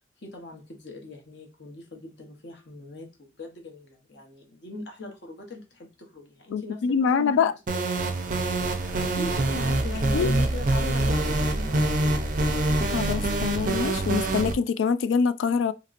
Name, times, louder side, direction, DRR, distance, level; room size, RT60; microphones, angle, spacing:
voice 1, 0.2-12.3, left 2 dB, 60° left, 0.9 m, -40 dB
voice 2, 6.5-7.5 10.1-10.3 12.9-15.7, left 6 dB, 80° left, 0.3 m, -24 dB
sound 1, 7.7-14.5, right 2 dB, 40° right, 0.4 m, -25 dB
2.9 x 2.9 x 2.4 m
head